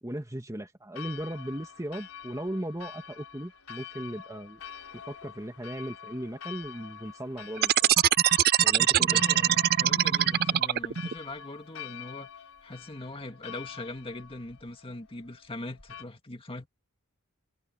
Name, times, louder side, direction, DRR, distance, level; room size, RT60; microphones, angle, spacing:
voice 1, 0.0-4.6 5.1-7.9 8.6-9.2, right 1 dB, 15° right, 1.9 m, -37 dB
Church bell, 0.9-16.0, left 8 dB, 80° left, 3.5 m, -46 dB
sound 1, 7.6-11.1, right 11 dB, 45° right, 0.4 m, -22 dB
voice 2, 8.9-16.7, left 2 dB, 25° left, 2.2 m, -41 dB
head